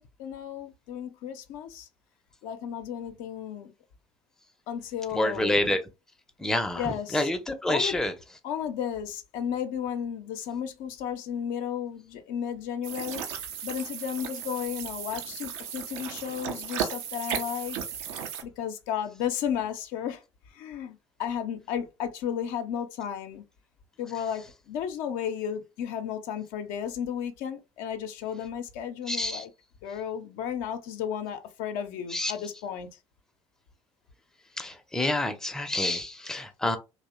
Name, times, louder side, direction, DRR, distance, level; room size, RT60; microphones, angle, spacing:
voice 1, 0.0-1.9 2.4-3.7 4.7-5.7 6.7-7.3 7.7-8.0 8.4-17.8 18.1-20.2 20.5-23.4 24.0-29.5 29.8-32.9, left 8 dB, 60° left, 0.5 m, -34 dB
voice 2, 5.1-5.8 6.4-8.1 29.1-29.4 32.1-32.3 34.6-36.8, left 1 dB, 5° left, 0.5 m, -28 dB
sound 1, 12.8-18.4, right 8 dB, 70° right, 0.5 m, -35 dB
2.6 x 2.0 x 2.4 m
figure-of-eight pair, 55°, 15 cm